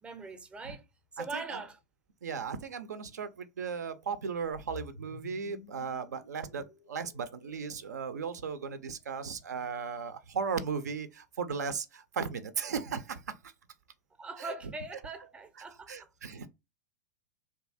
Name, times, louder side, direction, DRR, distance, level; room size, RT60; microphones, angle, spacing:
voice 1, 0.0-0.8 1.1-1.8 14.2-16.1, right 3 dB, 10° right, 0.5 m, -41 dB
voice 2, 1.2-1.6 2.2-13.5 14.4-14.5 15.9-16.5, right 6 dB, 80° right, 0.4 m, -36 dB
sound 1, 4.4-8.7, left 5 dB, 75° left, 0.5 m, -52 dB
2.8 x 2.3 x 2.6 m
hypercardioid pair, 100°, 9 cm